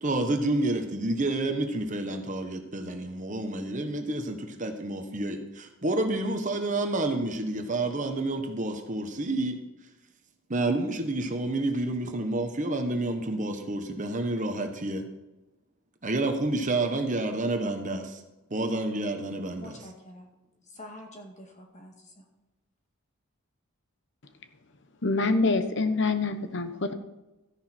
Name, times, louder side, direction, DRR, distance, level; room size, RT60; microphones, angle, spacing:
voice 1, 0.0-9.6 10.5-15.1 16.0-18.2 18.5-19.8, right 2 dB, 35° right, 5 dB, 1.1 m, -29 dB
voice 2, 19.6-20.3 20.6-22.3, left 1 dB, 35° left, 1 dB, 2.0 m, -46 dB
voice 3, 25.0-26.9, left 3 dB, 55° left, 9 dB, 1.0 m, -25 dB
14.0 x 10.0 x 4.4 m, 1.0 s
head